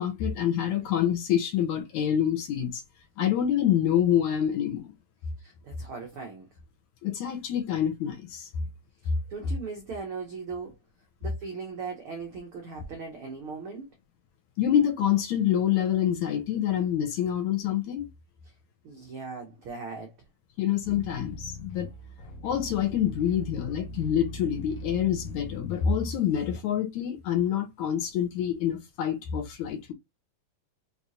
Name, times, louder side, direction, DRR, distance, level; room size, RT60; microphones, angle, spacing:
voice 1, 0.0-2.8 3.2-4.9 7.0-8.5 14.6-18.1 20.6-21.9 22.4-29.9, left 10 dB, 70° left, 2.0 m, -26 dB
voice 2, 5.4-6.5 9.0-10.7 11.2-13.9 18.8-20.1, right 4 dB, 80° right, 1.2 m, -39 dB
sound 1, 20.8-26.0, left 1 dB, 85° left, 2.7 m, -40 dB
6.0 x 3.2 x 2.7 m
omnidirectional pair, 3.9 m